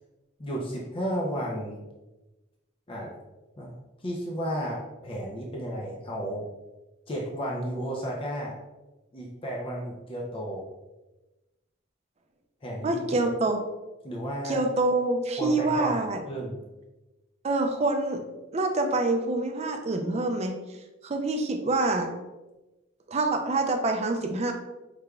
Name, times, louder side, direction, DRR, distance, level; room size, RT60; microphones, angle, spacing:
voice 1, 0.4-1.8 2.9-3.1 3.6-3.7 4.0-6.5 7.1-8.6 9.1-10.7 12.6-13.3 14.0-14.6 15.4-16.6, equal, 25° left, -2 dB, 0.5 m, -33 dB
voice 2, 12.8-13.6 14.4-16.2 17.4-18.2 18.5-20.5 21.0-22.1 23.1-24.5, right 2 dB, 35° right, 5 dB, 0.4 m, -26 dB
4.8 x 3.3 x 2.3 m, 1.1 s
head